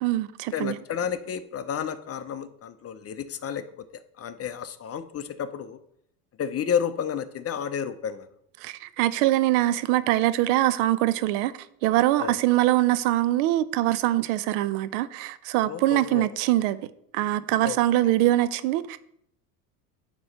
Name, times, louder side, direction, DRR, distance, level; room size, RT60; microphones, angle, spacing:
voice 1, 0.0-0.8 8.6-11.5 11.8-16.8 17.1-19.0, right 15 dB, 65° right, 0.6 m, -23 dB
voice 2, 0.5-5.8 6.4-8.3 12.2-12.4 15.6-16.3 17.6-17.8, left 8 dB, 30° left, 0.7 m, -31 dB
9.2 x 3.1 x 6.5 m
hypercardioid pair, 75°, 46 cm